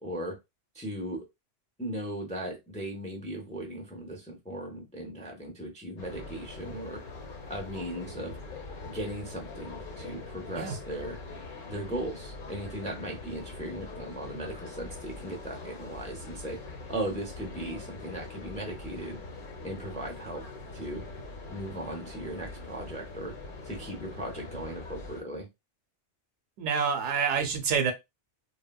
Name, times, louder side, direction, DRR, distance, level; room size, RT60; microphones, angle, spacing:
voice 1, 0.0-0.4 0.7-1.2 1.8-7.0 7.5-8.4 8.8-11.2 11.7-16.6 16.9-19.2 19.6-20.4 20.7-21.0 21.5-23.3 23.6-25.5, right 1 dB, 10° left, 0.5 m, -37 dB
sound 1, 6.0-25.2, left 3 dB, 50° left, 0.8 m, -43 dB
voice 2, 26.6-27.9, right 6 dB, 80° right, 0.9 m, -27 dB
3.2 x 2.2 x 2.2 m
omnidirectional pair, 1.2 m